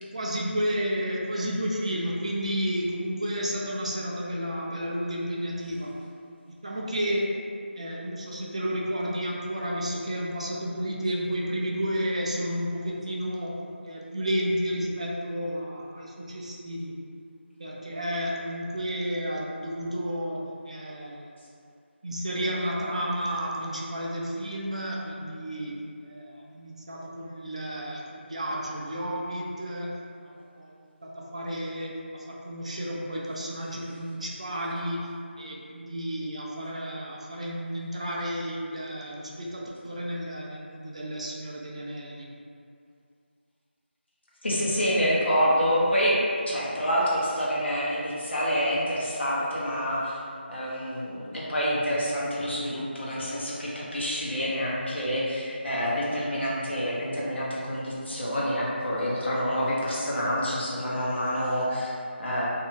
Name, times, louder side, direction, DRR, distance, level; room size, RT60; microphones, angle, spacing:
voice 1, 0.0-5.9 6.6-7.4 7.8-13.6 13.8-17.0 17.6-21.3 22.0-25.7 26.0-29.9 30.2-30.7 31.0-42.3, equal, 35° right, -3 dB, 0.3 m, -32 dB
voice 2, 44.4-50.2 50.5-61.9 62.2-62.5, equal, 70° left, -7 dB, 0.9 m, -27 dB
2.6 x 2.2 x 3.1 m, 2.3 s
figure-of-eight pair, 170°, 6 cm